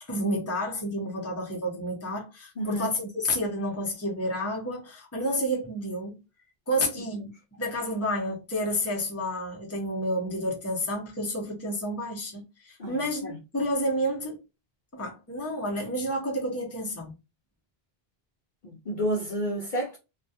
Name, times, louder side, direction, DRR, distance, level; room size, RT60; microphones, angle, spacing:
voice 1, 0.0-6.2 6.7-7.3 7.6-14.4 14.9-17.1, equal, 15° left, 0.6 m, -30 dB
voice 2, 2.6-2.9 6.8-6.9 12.8-13.4 18.6-20.0, right 1 dB, 55° left, 0.6 m, -31 dB
2.3 x 2.2 x 2.7 m
omnidirectional pair, 1.1 m